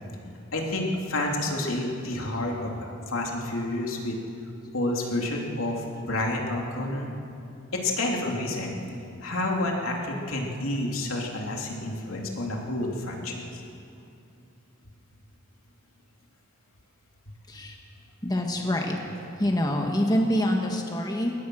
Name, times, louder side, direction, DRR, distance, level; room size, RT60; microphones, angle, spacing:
voice 1, 0.5-4.2 4.7-7.1 7.8-8.8 9.2-13.6, left 1 dB, 80° left, 0 dB, 3.0 m, -29 dB
voice 2, 18.2-19.0 19.4-21.3, equal, 20° left, 1 dB, 1.5 m, -25 dB
22.0 x 19.0 x 6.3 m, 2.6 s
head